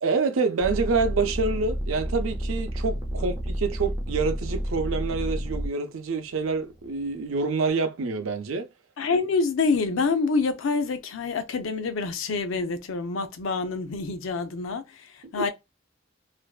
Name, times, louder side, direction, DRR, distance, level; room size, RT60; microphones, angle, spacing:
voice 1, 0.0-8.7 15.2-15.5, right 4 dB, 85° right, 0.5 m, -27 dB
sound 1, 0.6-5.7 6.4-7.1, equal, 15° right, 0.4 m, -30 dB
voice 2, 9.0-15.1 15.3-15.5, left 4 dB, 75° left, 0.5 m, -26 dB
2.5 x 2.2 x 2.3 m
head